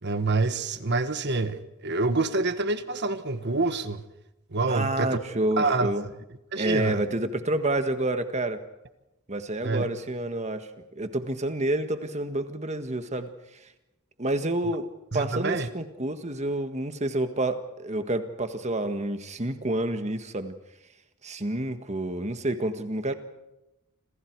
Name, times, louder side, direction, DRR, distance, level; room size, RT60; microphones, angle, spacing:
voice 1, 0.0-4.0 4.5-5.2 5.6-5.9 6.5-7.0 9.6-9.9 15.1-15.7, right 3 dB, 50° right, 1.4 m, -27 dB
voice 2, 4.7-6.0 6.5-8.6 9.3-10.7 10.9-13.3 14.2-14.9 15.1-20.5 21.2-23.1, right 1 dB, 30° right, 1.7 m, -29 dB
28.0 x 27.0 x 4.8 m
head